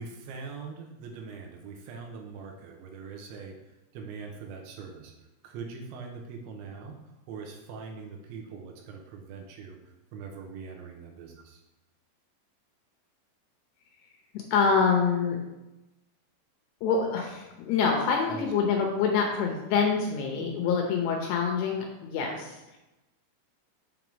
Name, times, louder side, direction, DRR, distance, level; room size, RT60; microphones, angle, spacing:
voice 1, 0.0-3.5 3.9-5.1 5.4-7.0 7.3-11.6 18.3-18.5, right 5 dB, 80° right, 1 dB, 3.1 m, -42 dB
voice 2, 14.5-15.4 16.8-22.8, left 5 dB, 75° left, 1 dB, 2.6 m, -26 dB
7.6 x 3.5 x 5.9 m, 1.0 s
omnidirectional pair, 5.6 m